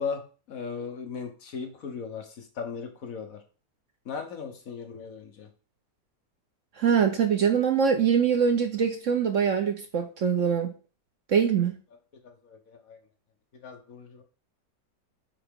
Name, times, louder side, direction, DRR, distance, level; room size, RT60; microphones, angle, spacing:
voice 1, 0.0-3.4 4.0-5.5 12.2-13.0 13.6-14.2, left 5 dB, 55° left, 5 dB, 1.3 m, -37 dB
voice 2, 6.8-10.7 11.3-11.7, right 7 dB, 55° right, 6 dB, 1.0 m, -23 dB
8.8 x 4.7 x 3.6 m, 0.37 s
omnidirectional pair, 1.8 m